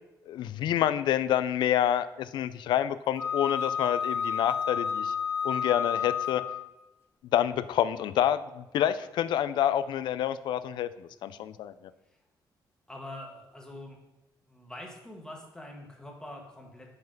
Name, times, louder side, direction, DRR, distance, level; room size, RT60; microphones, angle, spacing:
voice 1, 0.3-5.1 5.4-6.4 7.3-11.7, left 11 dB, 80° left, 14 dB, 0.4 m, -28 dB
Wind instrument woodwind instrument, 3.2-6.8, left 7 dB, 30° left, 0.7 m, -30 dB
voice 2, 12.9-14.0 14.5-16.9, left 1 dB, 10° left, 0 dB, 1.3 m, -44 dB
5.8 x 5.6 x 5.2 m, 0.95 s
cardioid pair, 140°, 8 cm